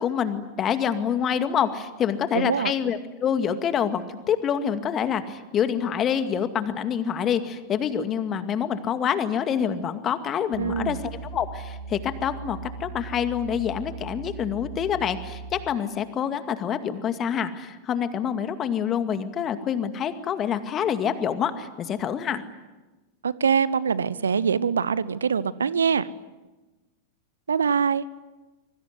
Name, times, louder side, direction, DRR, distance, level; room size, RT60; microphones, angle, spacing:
voice 1, 0.0-22.4, left 8 dB, 30° left, 9 dB, 2.2 m, -26 dB
voice 2, 2.3-2.7 10.6-11.0 23.2-26.1 27.5-28.1, right 6 dB, 70° right, 20 dB, 0.9 m, -23 dB
sound 1, 10.5-15.8, right 4 dB, 40° right, 6.5 m, -39 dB
26.0 x 23.5 x 9.6 m, 1.1 s
figure-of-eight pair, 90°, 0 cm